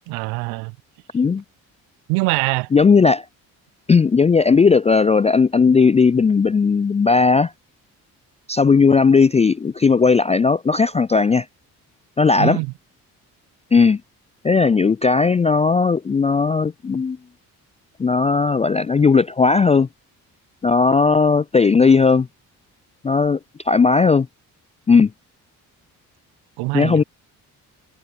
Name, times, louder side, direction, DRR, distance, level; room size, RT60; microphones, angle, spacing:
voice 1, 0.1-0.7 2.1-2.7 12.4-12.7 26.6-27.0, right 28 dB, 75° right, 1.1 m, -23 dB
voice 2, 2.7-3.3 3.9-7.5 8.5-11.5 12.2-12.6 13.7-14.0 14.4-17.2 18.0-19.9 20.6-22.3 23.0-23.4 23.6-24.3 24.9-25.1 26.7-27.0, left 5 dB, 15° left, 0.4 m, -16 dB
hypercardioid pair, 40°, 48 cm